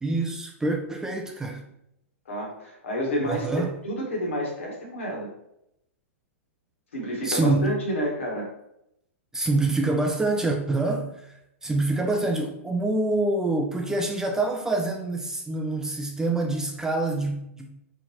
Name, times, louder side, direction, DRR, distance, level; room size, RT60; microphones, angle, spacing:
voice 1, 0.0-1.6 3.2-3.7 7.2-7.8 9.3-17.7, right 2 dB, 5° right, 0.5 m, -26 dB
voice 2, 2.3-5.3 6.9-8.5, equal, 65° left, 1.7 m, -30 dB
4.3 x 3.8 x 3.0 m
figure-of-eight pair, 100°, 7 cm